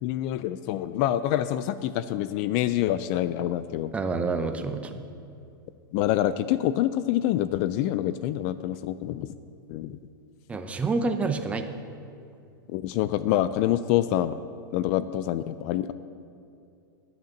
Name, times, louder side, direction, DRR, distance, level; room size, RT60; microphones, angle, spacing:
voice 1, 0.0-3.9 5.9-9.3 9.7-10.0 12.7-14.4 14.7-15.9, left 13 dB, 40° left, 13 dB, 0.3 m, -26 dB
voice 2, 3.9-5.0 10.5-11.6, right 4 dB, 10° right, 7 dB, 0.6 m, -28 dB
10.5 x 7.9 x 6.5 m, 2.6 s
supercardioid pair, 150°, 12 cm